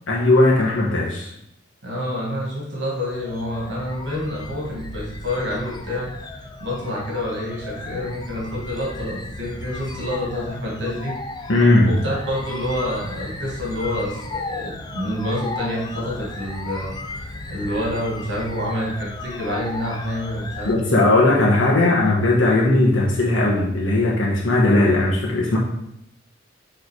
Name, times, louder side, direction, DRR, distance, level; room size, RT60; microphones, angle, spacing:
voice 1, 0.1-1.3 11.5-11.9 20.6-25.6, left 2 dB, 85° left, -4 dB, 1.2 m, -17 dB
voice 2, 1.8-6.1 6.6-11.1 11.9-16.9 17.2-21.0, left 1 dB, 65° right, -3 dB, 1.8 m, -28 dB
sound 1, 3.0-20.7, left 2 dB, 20° left, 0.5 m, -35 dB
6.7 x 3.5 x 4.8 m, 0.76 s
head